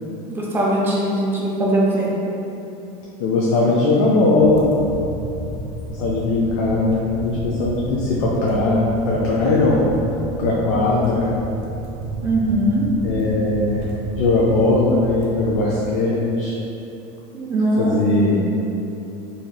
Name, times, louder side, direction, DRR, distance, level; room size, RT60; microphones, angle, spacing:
voice 1, 0.3-2.1 12.2-12.9 17.3-18.0, right 1 dB, 10° right, -4 dB, 0.3 m, -20 dB
voice 2, 3.2-4.6 6.0-8.8 9.1-9.8 10.4-11.3 13.0-13.8 14.2-16.5 17.8-18.4, left 2 dB, 75° left, -5 dB, 0.5 m, -19 dB
sound 1, 4.4-15.6, right 2 dB, 50° right, 0.6 m, -31 dB
3.0 x 2.7 x 2.2 m, 2.9 s
cardioid pair, 160°, 18 cm